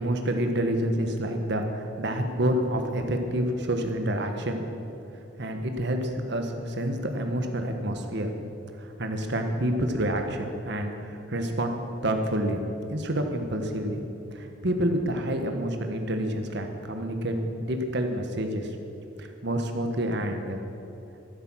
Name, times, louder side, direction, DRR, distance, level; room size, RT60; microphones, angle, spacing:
voice 1, 0.0-4.7 5.4-8.4 8.8-12.6 12.9-14.0 14.3-17.3 17.6-18.7 19.2-20.6, right 1 dB, 60° right, 5 dB, 1.4 m, -28 dB
13.0 x 11.5 x 6.3 m, 2.8 s
head